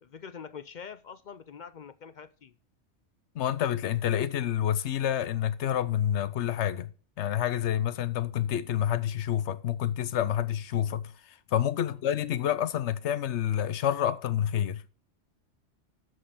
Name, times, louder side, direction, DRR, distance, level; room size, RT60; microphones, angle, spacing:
voice 1, 0.0-2.5 11.9-12.0, left 7 dB, 55° left, 0.5 m, -45 dB
voice 2, 3.4-6.9 7.2-11.1 11.5-14.8, left 10 dB, 70° left, 0.9 m, -28 dB
7.7 x 6.3 x 7.6 m
omnidirectional pair, 1.2 m